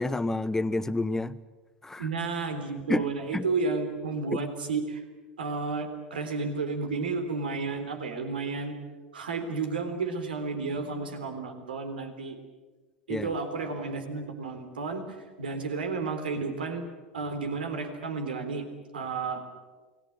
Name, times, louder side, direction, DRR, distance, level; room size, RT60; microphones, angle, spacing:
voice 1, 0.0-1.4 1.8-2.1 2.9-3.5 13.1-13.3, left 2 dB, 10° left, 0.9 m, -29 dB
voice 2, 2.0-5.0 5.4-8.8 9.1-12.4 13.1-16.9 17.1-18.7 18.9-19.4, right 4 dB, 70° right, 3.5 m, -32 dB
29.0 x 19.5 x 8.8 m
figure-of-eight pair, 80°, 5 cm